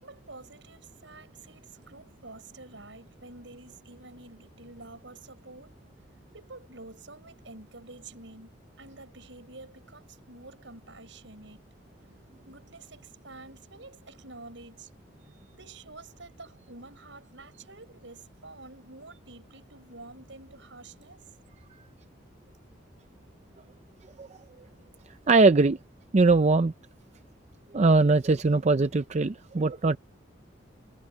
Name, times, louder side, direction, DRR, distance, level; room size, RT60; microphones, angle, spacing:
voice 1, 0.0-5.8 6.3-11.6 12.4-14.9 15.5-21.3, right 3 dB, 75° right, 6.4 m, -48 dB
voice 2, 25.3-25.8 26.1-26.7 27.7-30.0, right 3 dB, 35° right, 0.5 m, -21 dB
head